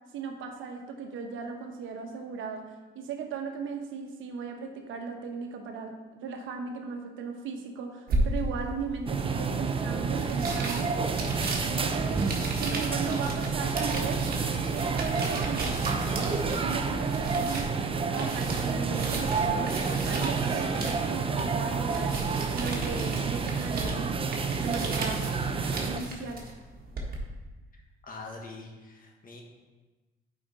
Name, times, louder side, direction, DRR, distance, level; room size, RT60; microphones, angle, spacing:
voice 1, 0.1-10.9 11.6-12.2 12.6-14.3 14.6-15.8 16.1-22.2 22.5-24.1 24.6-25.3 25.8-26.4, right 5 dB, 80° right, 4 dB, 1.1 m, -37 dB
sound 1, 8.1-27.2, right 2 dB, 50° right, 1.5 m, -36 dB
sound 2, 9.1-26.0, right 5 dB, 25° right, 0.6 m, -29 dB
voice 2, 27.7-29.4, left 3 dB, 45° left, 1 dB, 1.5 m, -44 dB
7.9 x 5.1 x 4.1 m, 1.2 s
cardioid pair, 90°, 20 cm